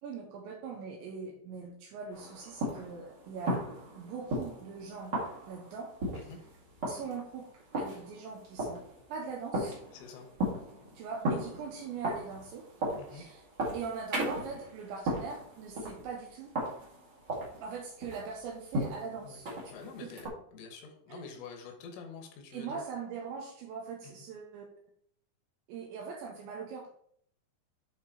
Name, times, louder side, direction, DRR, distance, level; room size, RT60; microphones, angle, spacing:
voice 1, 0.0-3.6 4.0-5.2 5.5-5.9 6.9-8.8 9.1-9.8 10.9-12.7 13.1-13.4 13.7-16.5 17.6-19.5 20.0-20.1 21.1-21.3 22.5-24.7 25.7-26.9, right 5 dB, 75° right, 0 dB, 3.0 m, -41 dB
sound 1, 2.1-20.3, equal, 40° right, 1.6 m, -37 dB
voice 2, 9.9-10.3 13.0-13.2 19.2-19.4 19.7-22.8 24.0-24.1, left 5 dB, 75° left, 4 dB, 3.6 m, -47 dB
10.5 x 4.3 x 4.1 m, 0.65 s
omnidirectional pair, 5.8 m